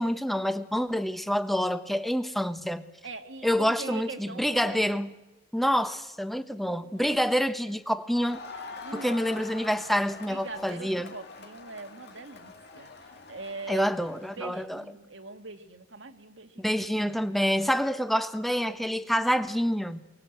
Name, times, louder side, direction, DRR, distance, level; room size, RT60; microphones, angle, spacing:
voice 1, 0.0-2.8 3.4-5.1 5.5-8.4 8.9-11.1 13.7-14.8 16.6-20.0, equal, ahead, 1.1 m, -27 dB
voice 2, 3.0-5.0 6.5-7.2 8.8-9.2 10.3-13.9 14.4-16.7, right 3 dB, 80° right, 2.0 m, -42 dB
Crowd, 8.1-14.7, left 3 dB, 60° left, 2.3 m, -45 dB
23.5 x 19.5 x 7.9 m
head